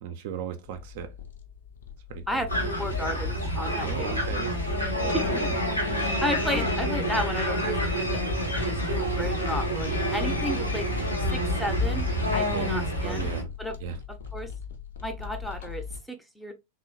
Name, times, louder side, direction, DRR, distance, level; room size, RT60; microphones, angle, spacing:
voice 1, 0.0-1.1 2.1-2.5 3.8-4.5 12.5-13.5 13.8-14.0, right 8 dB, 50° right, 0.4 m, -36 dB
sound 1, 0.6-16.0, left 7 dB, 65° left, 0.5 m, -41 dB
voice 2, 2.3-4.3 5.1-5.5 6.0-8.2 8.6-10.9 11.3-13.3 13.6-13.8 14.1-14.5 15.0-16.5, equal, 5° left, 0.5 m, -33 dB
sound 2, 2.5-13.4, equal, 85° left, 0.9 m, -28 dB
2.9 x 2.0 x 2.6 m
figure-of-eight pair, 90°, 0 cm